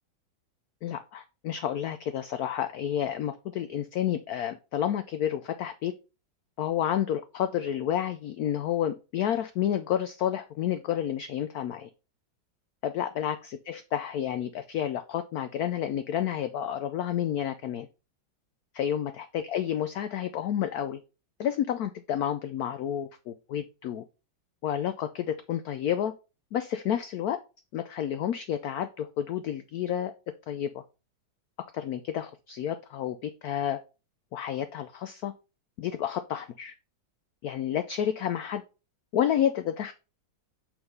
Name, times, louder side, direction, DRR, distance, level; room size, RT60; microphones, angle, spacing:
voice 1, 0.8-5.9 6.6-11.9 12.8-17.9 18.7-21.0 21.4-24.0 24.6-26.1 26.5-27.4 27.7-30.1 30.5-30.8 31.7-33.8 34.3-35.3 35.8-36.7 37.4-38.6 39.1-39.9, left 10 dB, 80° left, 10 dB, 0.8 m, -30 dB
5.8 x 3.8 x 5.4 m, 0.31 s
omnidirectional pair, 2.1 m